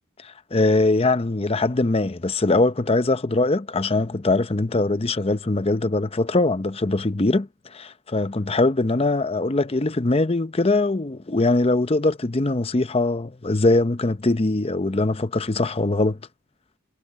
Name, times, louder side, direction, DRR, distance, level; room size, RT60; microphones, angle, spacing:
voice 1, 0.2-16.2, left 2 dB, 25° left, 0.6 m, -22 dB
head